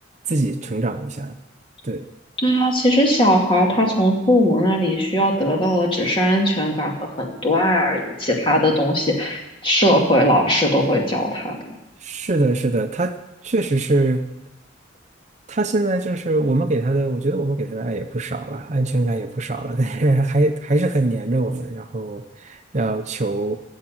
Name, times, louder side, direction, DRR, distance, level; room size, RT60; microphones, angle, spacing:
voice 1, 0.3-1.4 1.8-2.1 12.0-14.2 15.5-23.6, right 2 dB, 35° right, 7 dB, 0.6 m, -22 dB
voice 2, 2.4-11.6, equal, 25° left, 0 dB, 2.4 m, -19 dB
14.5 x 7.4 x 9.2 m, 0.93 s
head